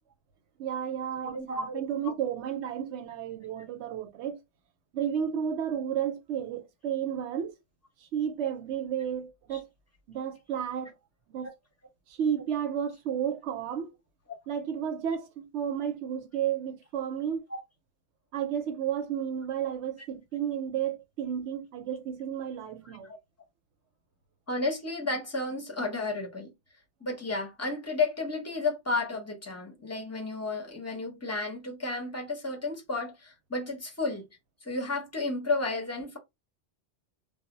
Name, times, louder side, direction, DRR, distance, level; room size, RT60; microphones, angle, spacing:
voice 1, 0.6-4.4 4.9-7.5 8.0-9.7 10.1-10.9 11.3-11.5 12.1-13.9 14.5-17.4 18.3-23.1, right 9 dB, 75° right, 0.8 m, -32 dB
voice 2, 1.2-2.1 17.5-17.6 23.1-23.2 24.5-26.5 27.0-34.3 34.6-36.2, left 3 dB, 15° left, 0.6 m, -32 dB
2.1 x 2.0 x 3.6 m
omnidirectional pair, 1.2 m